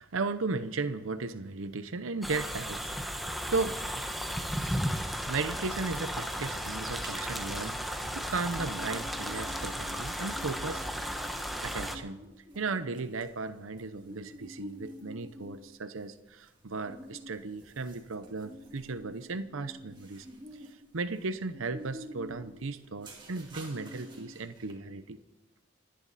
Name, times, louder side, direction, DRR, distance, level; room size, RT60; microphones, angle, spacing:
voice 1, 0.0-4.0 5.3-11.3 11.6-12.2 12.5-20.3 20.6-25.2, right 3 dB, 85° right, 12 dB, 0.7 m, -36 dB
sound 1, 2.2-12.0, equal, ahead, 0.9 m, -35 dB
sound 2, 7.0-7.2 7.6-24.7, equal, 25° right, 2.3 m, -49 dB
26.5 x 10.5 x 4.1 m, 0.96 s
head